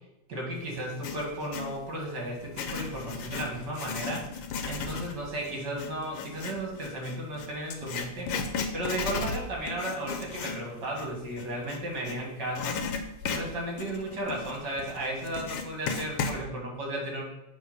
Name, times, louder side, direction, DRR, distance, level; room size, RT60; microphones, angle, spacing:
voice 1, 0.3-4.2 4.6-12.8 13.3-17.2, right 1 dB, 65° right, -2 dB, 2.4 m, -34 dB
Writing, 0.8-1.8 2.4-12.2 12.5-16.4, left 5 dB, 85° left, 1.5 m, -35 dB
7.8 x 3.3 x 5.5 m, 0.88 s
omnidirectional pair, 2.1 m